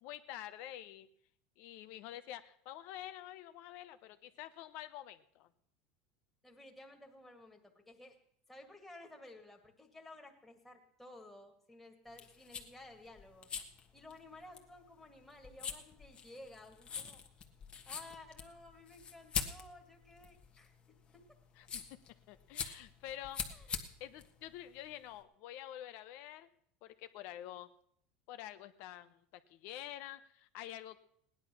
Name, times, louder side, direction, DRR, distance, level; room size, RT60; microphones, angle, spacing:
voice 1, 0.0-1.1 1.6-5.5 21.6-22.0 22.3-23.4 24.0-26.5 26.8-27.7 28.3-31.0, left 12 dB, 60° left, 11 dB, 0.8 m, -48 dB
voice 2, 6.4-8.2 8.5-17.2 17.9-20.7 21.1-21.2 23.5-23.8, left 2 dB, 5° left, 1 dB, 2.0 m, -55 dB
sound 1, 12.1-25.2, left 7 dB, 30° left, 1.4 m, -44 dB
16.5 x 10.5 x 6.0 m, 0.68 s
supercardioid pair, 130°, 4 cm